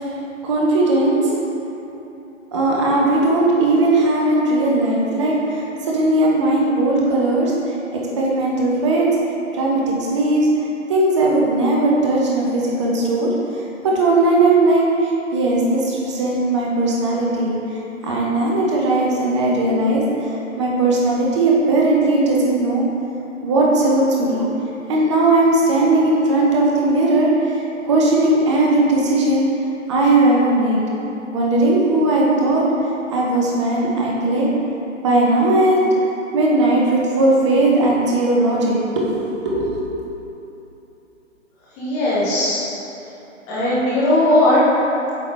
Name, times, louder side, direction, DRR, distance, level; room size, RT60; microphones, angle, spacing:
voice 1, 0.4-1.3 2.5-7.5 7.9-9.1 9.5-10.5 10.9-13.3 13.8-17.6 18.0-22.8 23.4-24.5 24.9-29.4 29.9-30.8 31.3-32.6 33.1-34.5 35.0-35.8 36.3-39.1 39.4-40.0, right 2 dB, 25° right, -3 dB, 0.8 m, -18 dB
voice 2, 41.8-42.6 43.5-44.6, left 1 dB, 10° left, -9 dB, 0.7 m, -17 dB
8.1 x 3.8 x 3.4 m, 3.0 s
figure-of-eight pair, 140°, 39 cm